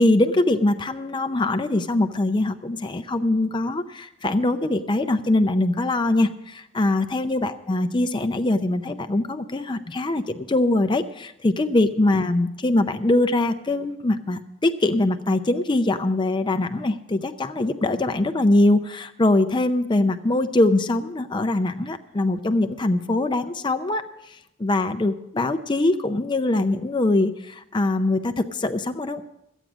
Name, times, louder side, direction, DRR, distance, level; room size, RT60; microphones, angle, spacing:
voice 1, 0.0-29.2, left 2 dB, 25° left, 9 dB, 0.5 m, -22 dB
13.5 x 9.0 x 6.1 m, 0.86 s
head